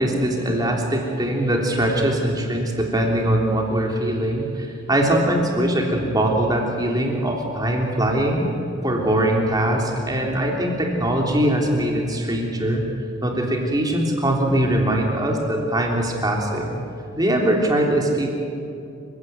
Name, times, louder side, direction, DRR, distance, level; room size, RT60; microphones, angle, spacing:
voice 1, 0.0-8.5 8.8-12.8 13.2-16.8 17.2-18.3, right 1 dB, 15° right, 0 dB, 3.4 m, -21 dB
28.0 x 16.5 x 9.2 m, 2.6 s
head